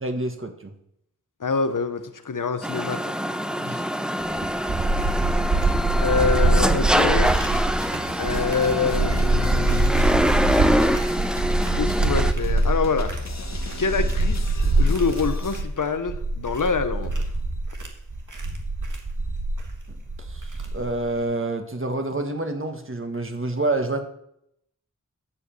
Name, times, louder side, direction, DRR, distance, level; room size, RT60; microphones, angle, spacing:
voice 1, 0.0-0.7 3.6-3.8 20.2-24.0, right 2 dB, 40° right, 5 dB, 1.6 m, -28 dB
voice 2, 1.4-3.1 6.0-7.3 8.2-10.4 11.7-13.1 13.8-17.2, left 5 dB, 85° left, 10 dB, 0.9 m, -26 dB
sound 1, 2.6-12.3, equal, 5° right, 0.6 m, -25 dB
sound 2, 4.2-21.1, right 2 dB, 75° right, 1.7 m, -24 dB
sound 3, 6.9-15.6, left 4 dB, 60° left, 1.2 m, -37 dB
11.0 x 5.2 x 7.7 m, 0.76 s
wide cardioid pair, 55°, 31 cm